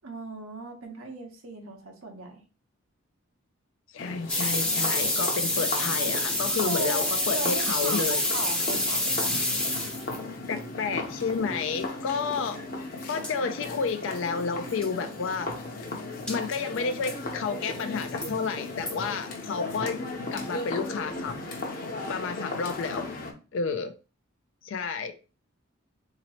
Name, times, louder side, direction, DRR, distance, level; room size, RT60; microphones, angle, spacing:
voice 1, 0.0-2.4 6.6-8.1 8.3-9.1, right 3 dB, 90° right, 3 dB, 1.0 m, -37 dB
voice 2, 3.9-8.2 10.5-12.6 13.1-15.5 16.3-20.0 20.3-21.5 22.1-23.1 23.5-23.9 24.6-25.1, left 5 dB, 65° left, 9 dB, 0.4 m, -31 dB
sound 1, 4.0-23.3, left 2 dB, 45° left, 0.7 m, -36 dB
sound 2, 4.3-10.2 13.0-13.1 13.2-13.3 13.9-14.0 14.1-14.2 14.7-14.9 16.3-16.6 17.1-17.2 17.8-18.3 18.9-19.0, left 1 dB, 5° left, 0.6 m, -27 dB
4.0 x 2.9 x 2.9 m, 0.34 s
head